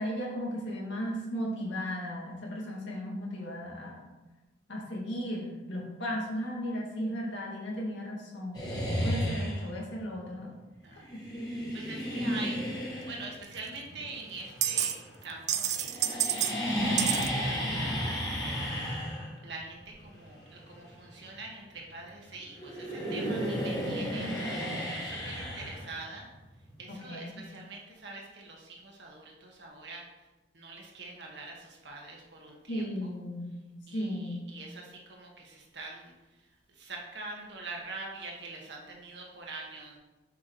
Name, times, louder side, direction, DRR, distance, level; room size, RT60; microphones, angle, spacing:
voice 1, 0.0-4.1 4.7-10.5 11.1-11.2 26.9-27.3 32.7-33.6 33.9-34.4, equal, 85° left, -3 dB, 2.0 m, -35 dB
sound 1, 8.5-9.8 11.1-15.3 15.6-22.2 22.5-26.3, equal, 20° left, 1.6 m, -33 dB
voice 2, 11.4-12.6 13.1-17.9 18.4-19.0 19.4-24.3 24.8-26.3 26.8-30.0 30.5-32.8 33.9-36.1 36.8-40.0, right 3 dB, 70° right, -1 dB, 1.6 m, -44 dB
sound 2, 13.6-13.7 14.6-15.0 15.2-16.5 17.0-17.3, right 10 dB, 40° right, 0.3 m, -29 dB
7.4 x 5.7 x 3.1 m, 1.1 s
head